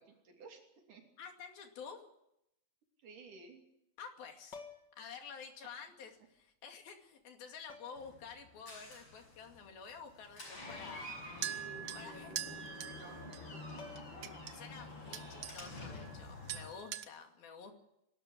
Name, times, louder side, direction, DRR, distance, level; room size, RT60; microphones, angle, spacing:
voice 1, 0.0-1.0 3.0-3.6 5.6-5.7 11.4-13.3 13.7-14.1, right 4 dB, 60° right, 3 dB, 4.4 m, -55 dB
voice 2, 1.2-2.1 4.0-4.6 5.0-11.3 12.0-12.3 14.5-17.7, left 6 dB, 75° left, 4 dB, 4.3 m, -50 dB
sound 1, 4.5-5.1 6.4-6.5 7.7-8.1 10.7-11.1 11.4-11.5 13.4-13.5 13.8-14.4 16.3-16.5, left 5 dB, 50° left, 1.4 m, -52 dB
Door, 8.0-16.7, left 2 dB, 30° left, 6.6 m, -49 dB
sound 2, 11.4-13.4 14.0-14.5 15.1-15.7 16.0-16.2 16.5-17.0, right 10 dB, 85° right, 1.3 m, -43 dB
23.5 x 13.0 x 9.9 m, 0.83 s
omnidirectional pair, 4.3 m